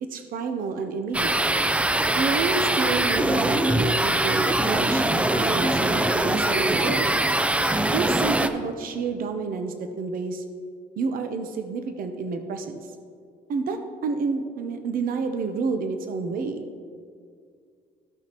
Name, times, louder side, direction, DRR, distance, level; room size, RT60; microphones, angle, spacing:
voice 1, 0.0-1.4 2.2-7.1 7.9-10.4 11.0-12.9 13.5-16.6, right 4 dB, 55° right, 7 dB, 0.8 m, -29 dB
sound 1, 1.1-8.5, right 1 dB, 5° right, 0.4 m, -22 dB
15.0 x 5.8 x 3.0 m, 2.2 s
cardioid pair, 110°, 17 cm